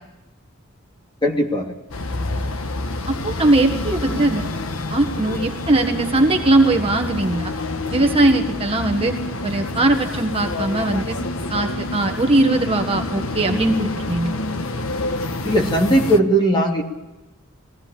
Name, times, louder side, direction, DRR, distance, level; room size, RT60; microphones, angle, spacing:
voice 1, 1.2-1.7 15.4-16.8, right 1 dB, 20° left, 0 dB, 2.8 m, -18 dB
sound 1, 1.9-16.2, left 2 dB, 70° left, 1.3 m, -27 dB
voice 2, 3.1-4.5 4.9-7.5 7.9-9.1 9.4-11.2 11.5-14.4, right 2 dB, 25° right, 4 dB, 1.4 m, -20 dB
21.0 x 16.0 x 8.7 m, 1.1 s
head